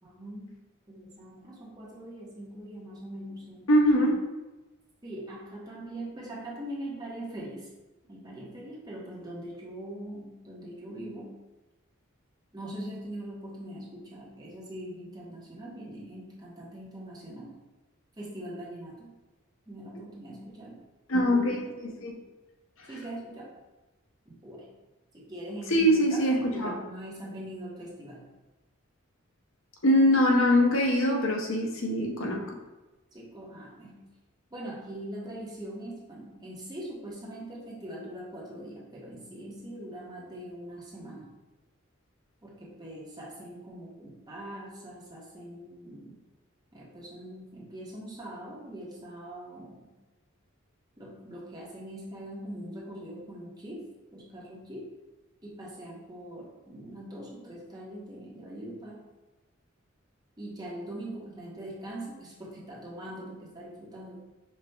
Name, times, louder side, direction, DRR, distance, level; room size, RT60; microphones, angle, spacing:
voice 1, 0.0-0.5 0.9-3.7 5.0-7.7 8.1-11.3 12.5-17.6 18.2-19.1 19.7-20.8 22.9-23.6 24.3-24.7 25.1-26.2 26.5-28.2 33.1-34.1 34.5-41.3 42.4-46.2 46.7-49.9 51.0-54.9 55.4-59.0 60.4-64.2, right 1 dB, 20° right, -5 dB, 1.0 m, -42 dB
voice 2, 3.7-4.2 21.1-22.2 25.7-26.8 29.8-32.4, equal, 70° left, -1 dB, 0.9 m, -23 dB
5.5 x 2.4 x 3.3 m, 1.1 s
head